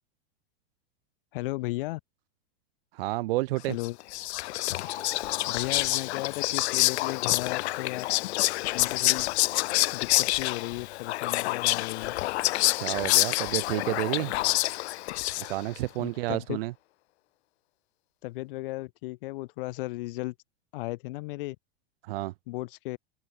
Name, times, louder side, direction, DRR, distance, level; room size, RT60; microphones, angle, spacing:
voice 1, 1.3-2.0 3.7-4.0 5.5-8.1 8.7-9.3 9.9-12.1 16.0-16.6 18.2-20.3 20.7-21.6 22.5-23.0, left 20 dB, 55° left, 5.0 m, -35 dB
voice 2, 2.9-3.7 12.8-14.3 15.4-16.7 22.0-22.3, right 18 dB, 60° right, 1.0 m, -30 dB
Whispering, 3.8-15.8, left 18 dB, 80° left, 0.6 m, -27 dB
sound 1, 4.9-7.3, left 7 dB, 15° left, 1.4 m, -46 dB
open air
supercardioid pair, 175°, 33 cm